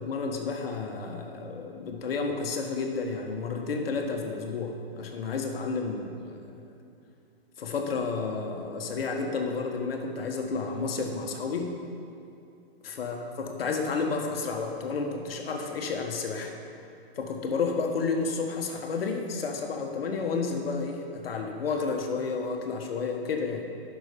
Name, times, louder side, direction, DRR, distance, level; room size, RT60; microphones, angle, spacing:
voice 1, 0.0-6.5 7.6-11.7 12.8-16.5 17.2-23.6, left 4 dB, 70° left, 3 dB, 1.5 m, -31 dB
11.0 x 6.2 x 5.2 m, 2.6 s
hypercardioid pair, 150°, 31 cm